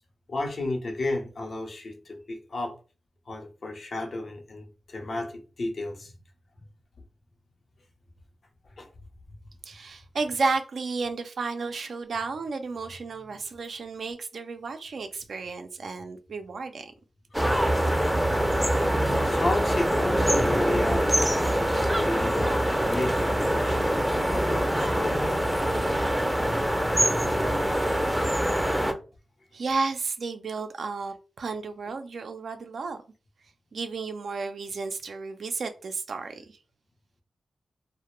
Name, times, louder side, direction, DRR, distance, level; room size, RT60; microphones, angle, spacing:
voice 1, 0.3-2.8 3.3-6.1 8.8-8.9 17.6-17.9 19.2-25.5, left 2 dB, 60° left, 0.6 m, -33 dB
voice 2, 9.6-16.9 29.5-33.0 33.7-36.4, right 4 dB, 70° right, 0.4 m, -32 dB
sound 1, 17.3-28.9, equal, 5° right, 0.5 m, -24 dB
2.1 x 2.1 x 3.0 m
cardioid pair, 45°, 0 cm